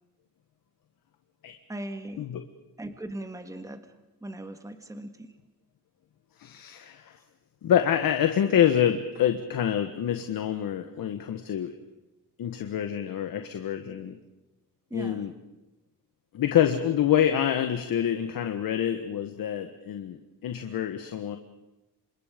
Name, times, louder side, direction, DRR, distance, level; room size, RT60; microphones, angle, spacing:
voice 1, 1.7-2.3 2.8-3.9 4.2-5.4 14.9-15.3, right 1 dB, 10° right, 8 dB, 1.7 m, -39 dB
voice 2, 6.4-7.2 7.6-11.7 12.4-14.2 14.9-15.3 16.3-21.4, left 9 dB, 70° left, 6 dB, 1.6 m, -26 dB
29.0 x 26.0 x 5.2 m, 1.0 s
cardioid pair, 120°, 35 cm